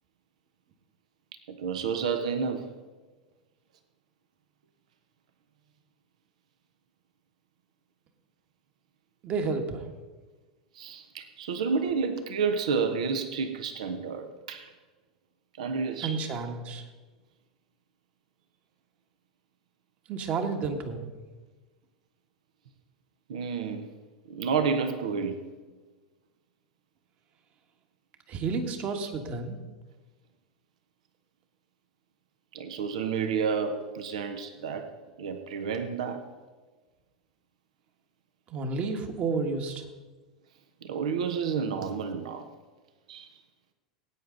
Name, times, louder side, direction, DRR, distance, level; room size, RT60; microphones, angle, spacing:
voice 1, 1.5-2.7 10.7-14.7 15.6-16.2 23.3-23.9 24.3-25.4 32.5-34.9 35.2-36.2 40.8-42.5 43.1-43.3, right 5 dB, 70° right, 8 dB, 1.1 m, -30 dB
voice 2, 9.2-9.9 16.0-16.9 20.1-21.0 28.3-29.6 38.5-39.9, right 4 dB, 40° right, 5 dB, 1.8 m, -31 dB
19.5 x 9.3 x 4.0 m, 1.3 s
figure-of-eight pair, 85°, 4 cm